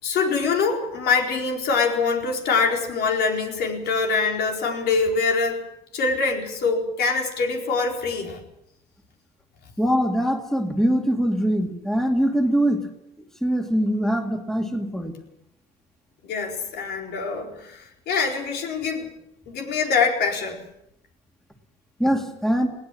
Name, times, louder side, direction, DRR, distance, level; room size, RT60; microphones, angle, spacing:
voice 1, 0.0-5.6 5.9-8.4 16.2-19.1 19.5-20.6, left 4 dB, 75° left, 2 dB, 4.4 m, -24 dB
voice 2, 9.8-12.8 13.4-15.1 22.0-22.7, equal, ahead, 4 dB, 2.2 m, -22 dB
21.0 x 17.0 x 7.6 m, 0.82 s
cardioid pair, 110°, 17 cm